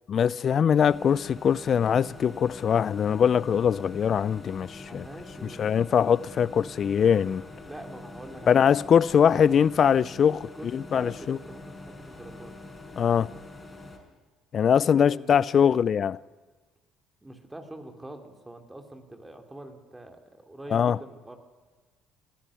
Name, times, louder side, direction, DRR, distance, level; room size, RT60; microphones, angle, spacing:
voice 1, 0.1-5.1 5.6-7.4 8.5-11.4 13.0-13.3 14.5-16.2 20.7-21.0, left 8 dB, 50° left, 0.5 m, -22 dB
sound 1, 0.8-14.0, left 2 dB, 20° left, 5.2 m, -45 dB
voice 2, 4.7-5.6 7.7-8.7 9.1-9.8 10.5-12.6 14.9-15.8 17.2-21.4, right 1 dB, 15° right, 2.9 m, -44 dB
20.5 x 13.5 x 9.8 m
supercardioid pair, 70°, 0 cm